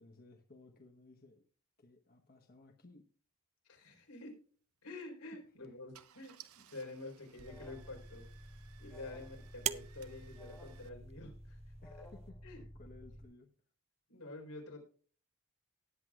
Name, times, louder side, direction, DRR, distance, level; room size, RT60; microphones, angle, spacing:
voice 1, 0.0-1.4 1.8-3.1 5.2-5.4 5.6-5.7 8.8-9.2 11.8-13.5, left 2 dB, 45° left, 3 dB, 1.1 m, -59 dB
voice 2, 3.6-4.4 4.8-8.2 8.8-12.1 12.4-12.6 14.1-14.9, left 2 dB, 90° left, 1 dB, 4.0 m, -49 dB
Car / Engine starting, 4.8-5.0 5.6-5.7 5.9-10.9, right 10 dB, 70° right, 0.8 m, -61 dB
sound 1, 7.3-12.3, right 9 dB, 30° right, 0.4 m, -46 dB
Alarm, 7.4-13.2, equal, 10° left, 1.9 m, -52 dB
18.5 x 8.1 x 2.4 m, 0.42 s
head